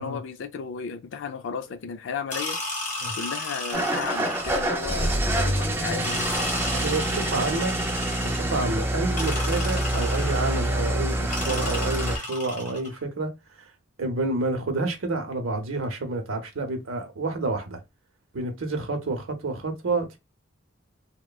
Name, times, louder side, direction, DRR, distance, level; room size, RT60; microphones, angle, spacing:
voice 1, 0.0-2.6 3.2-6.3 7.1-7.4, left 6 dB, 65° left, 0.3 m, -34 dB
sound 1, 2.3-4.9 6.0-8.6 9.2-10.7 11.3-12.9, left 2 dB, 35° left, 1.6 m, -34 dB
Engine starting / Idling, 3.7-12.2, right 1 dB, 10° right, 0.4 m, -26 dB
voice 2, 6.7-7.8 8.2-13.3 13.6-13.7 14.0-17.8 18.3-20.2, right 2 dB, 80° right, 0.7 m, -29 dB
2.9 x 2.1 x 2.3 m
head